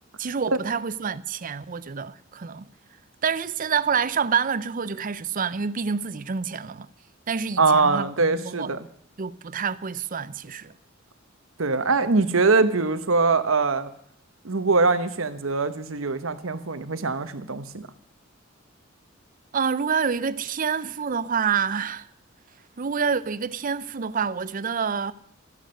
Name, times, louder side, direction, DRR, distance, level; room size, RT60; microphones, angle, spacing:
voice 1, 0.2-2.7 3.2-6.9 7.3-8.7 9.2-10.7 19.5-22.1 22.8-25.1, right 6 dB, 45° right, 0.5 m, -27 dB
voice 2, 7.6-8.9 11.6-13.9 14.4-17.9, right 3 dB, 90° right, 1.1 m, -22 dB
13.5 x 11.5 x 6.5 m
head